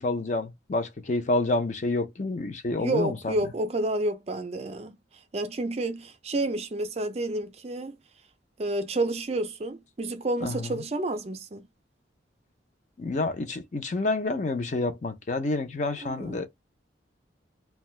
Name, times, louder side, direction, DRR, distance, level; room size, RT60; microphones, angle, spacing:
voice 1, 0.0-3.3 10.4-10.8 13.0-16.5, left 2 dB, 40° left, 0.5 m, -28 dB
voice 2, 2.8-4.9 5.3-8.0 8.6-11.7 16.0-16.5, right 2 dB, 35° right, 0.4 m, -30 dB
2.6 x 2.2 x 3.1 m
head